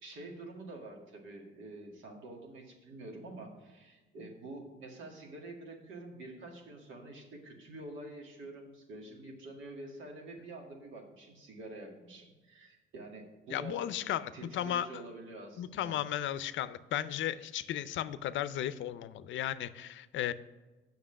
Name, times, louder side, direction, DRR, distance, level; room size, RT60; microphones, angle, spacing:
voice 1, 0.0-16.0, right 2 dB, 80° right, 1 dB, 2.0 m, -47 dB
voice 2, 13.5-14.9 15.6-20.3, left 11 dB, 75° left, 14 dB, 0.5 m, -35 dB
7.6 x 5.9 x 5.7 m, 1.2 s
cardioid pair, 90°, 20 cm